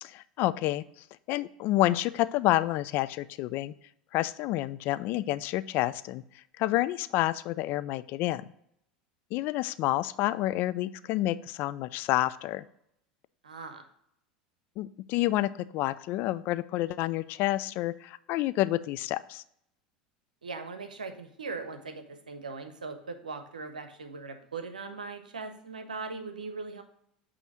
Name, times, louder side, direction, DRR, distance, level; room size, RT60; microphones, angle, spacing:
voice 1, 0.0-0.8 1.3-3.7 4.1-6.2 6.6-8.4 9.3-12.7 14.8-19.4, left 16 dB, 50° left, 15 dB, 0.3 m, -29 dB
voice 2, 13.4-13.9 20.4-26.8, right 4 dB, 85° right, 8 dB, 0.7 m, -40 dB
8.3 x 2.8 x 6.0 m, 0.72 s
hypercardioid pair, 80°, 4 cm